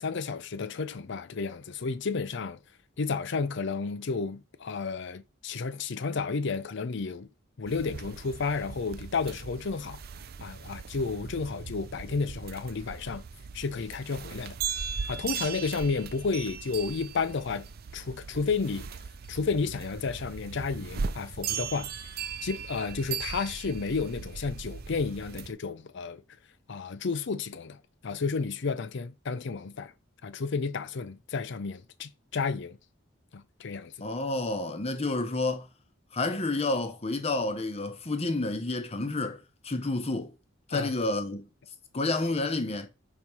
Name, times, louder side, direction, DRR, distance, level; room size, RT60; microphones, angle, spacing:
voice 1, 0.0-2.6 3.0-7.3 7.6-10.0 10.4-13.2 13.5-14.6 15.1-17.7 17.9-18.9 19.3-21.9 22.4-26.2 26.7-29.9 30.2-32.8 33.3-34.1 40.7-40.9, left 4 dB, 60° left, 0.6 m, -32 dB
sound 1, 7.7-25.5, right 6 dB, 50° right, 0.5 m, -38 dB
voice 2, 34.0-35.7 36.1-40.3 40.7-41.5 41.9-42.9, left 2 dB, 30° left, 0.9 m, -30 dB
5.5 x 4.3 x 4.6 m
head